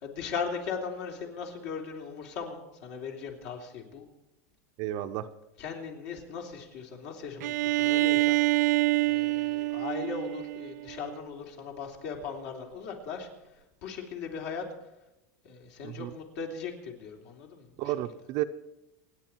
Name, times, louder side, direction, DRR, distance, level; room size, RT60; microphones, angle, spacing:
voice 1, 0.0-4.1 5.6-8.4 9.1-13.3 13.8-14.7 15.4-17.9, left 5 dB, 60° left, 1 dB, 3.5 m, -38 dB
voice 2, 4.8-5.3 15.8-16.1 17.8-18.4, right 14 dB, 45° right, 9 dB, 0.7 m, -32 dB
Bowed string instrument, 7.4-11.2, right 19 dB, 80° right, 0.5 m, -26 dB
27.5 x 9.9 x 4.6 m, 0.96 s
supercardioid pair, 150°, 9 cm